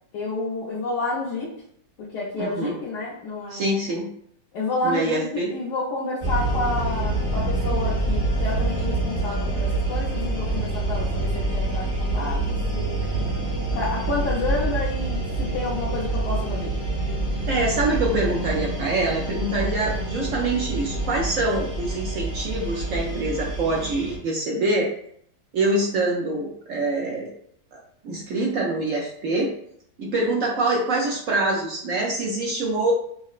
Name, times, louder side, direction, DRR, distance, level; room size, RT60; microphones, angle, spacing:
voice 1, 0.1-1.5 2.0-3.7 4.5-13.0 13.7-16.7, left 2 dB, 80° left, -7 dB, 1.4 m, -29 dB
voice 2, 2.4-2.8 3.5-4.1 4.8-5.5 17.5-24.9 25.5-27.3 27.7-29.5 30.0-32.9, right 2 dB, 65° right, -2 dB, 0.9 m, -25 dB
sound 1, 6.2-24.2, right 2 dB, 30° right, 1.2 m, -26 dB
5.7 x 2.1 x 2.4 m, 0.66 s
omnidirectional pair, 1.8 m